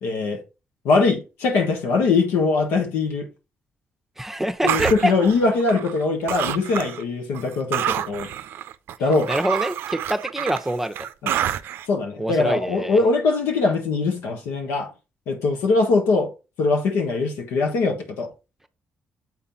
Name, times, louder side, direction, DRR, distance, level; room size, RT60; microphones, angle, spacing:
voice 1, 0.0-0.4 0.8-3.3 4.6-8.3 9.0-9.3 11.2-11.4 11.9-14.9 15.3-16.3 16.6-18.3, left 3 dB, 90° left, 1.4 m, -22 dB
voice 2, 4.2-5.1 9.3-11.1 12.2-13.0, right 1 dB, 5° right, 0.9 m, -25 dB
sound 1, 4.7-6.0 6.3-7.0 7.3-11.9, right 11 dB, 80° right, 0.5 m, -28 dB
7.9 x 3.8 x 4.2 m
supercardioid pair, 65°, 4 cm